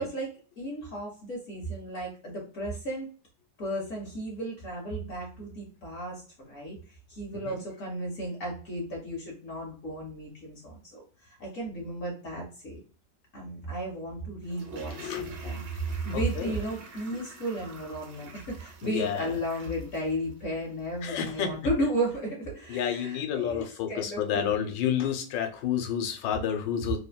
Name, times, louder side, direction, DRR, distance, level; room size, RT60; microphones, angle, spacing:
voice 1, 0.0-3.1 3.6-12.8 13.3-15.6 16.0-24.8, right 1 dB, 60° left, -1 dB, 0.9 m, -34 dB
Toilet flush, 14.4-21.5 21.8-21.9, right 2 dB, 85° right, 1.4 m, -48 dB
voice 2, 14.9-15.6 16.1-16.6 18.8-19.4 21.0-21.5 22.7-27.0, left 9 dB, 85° left, 6 dB, 1.2 m, -30 dB
3.2 x 2.1 x 2.2 m, 0.39 s
omnidirectional pair, 1.9 m